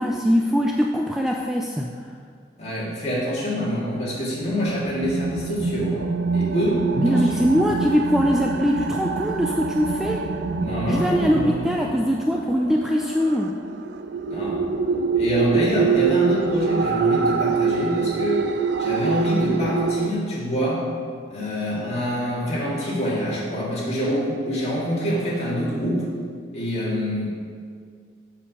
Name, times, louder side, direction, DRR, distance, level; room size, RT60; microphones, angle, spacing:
voice 1, 0.0-1.9 7.0-10.2 10.9-13.5, equal, ahead, 0 dB, 0.4 m, -22 dB
voice 2, 2.6-7.2 7.5-7.6 10.6-11.7 14.3-14.6 15.2-18.5 18.8-20.9 21.3-26.0 26.5-27.3, equal, 35° left, -6 dB, 2.3 m, -25 dB
sound 1, 4.3-20.1, right 4 dB, 70° right, 0.4 m, -25 dB
7.4 x 6.7 x 5.3 m, 2.1 s
head